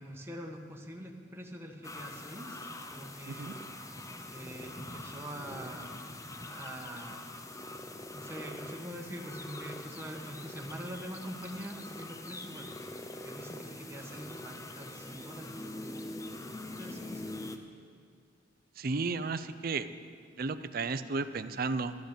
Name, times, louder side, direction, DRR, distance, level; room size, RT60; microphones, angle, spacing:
voice 1, 0.0-3.6 4.2-6.0 6.5-7.3 8.1-12.7 13.1-15.9 16.4-17.3, equal, 15° right, 0 dB, 1.3 m, -44 dB
sound 1, 1.8-17.6, left 2 dB, 15° left, 0.7 m, -44 dB
voice 2, 18.8-19.9 20.4-22.0, right 4 dB, 50° right, 11 dB, 0.6 m, -33 dB
13.0 x 12.0 x 6.7 m, 2.1 s
head